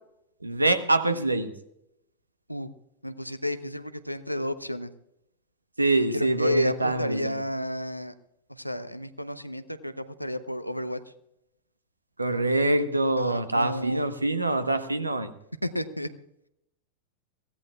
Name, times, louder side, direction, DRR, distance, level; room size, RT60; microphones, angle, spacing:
voice 1, 0.4-1.5 5.8-7.4 12.2-15.3, right 2 dB, 85° right, 10 dB, 1.1 m, -25 dB
voice 2, 3.0-4.9 6.1-8.1 8.6-11.0 13.2-14.1 15.7-16.1, left 1 dB, 90° left, 11 dB, 0.8 m, -32 dB
23.0 x 16.0 x 2.4 m, 0.81 s
figure-of-eight pair, 90°, 0 cm